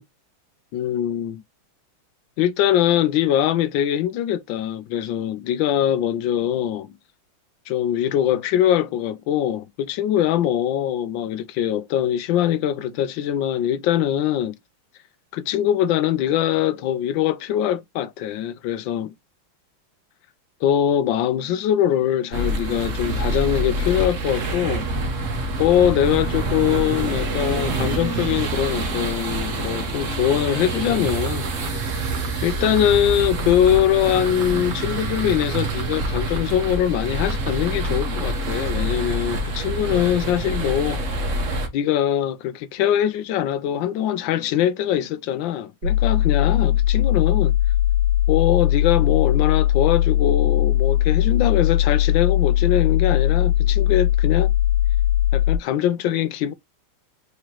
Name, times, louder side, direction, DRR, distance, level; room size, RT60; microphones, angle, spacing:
voice 1, 0.7-1.4 2.4-6.9 7.7-14.5 15.3-19.1 20.6-24.9 25.6-31.5 32.4-41.0 41.7-47.6 48.3-54.5 55.3-56.5, left 11 dB, 75° left, 1.2 m, -22 dB
Old Street - Policeman on the beat, 22.3-41.7, right 2 dB, 50° right, 1.1 m, -26 dB
sound 1, 30.9-31.7 32.0-32.9 33.2-33.8 34.1-36.4 36.6-36.7 37.1-38.2 38.7-38.8, right 8 dB, 75° right, 1.9 m, -37 dB
sound 2, 45.8-55.6, left 12 dB, 90° right, 1.5 m, -19 dB
4.9 x 2.9 x 2.9 m
omnidirectional pair, 2.2 m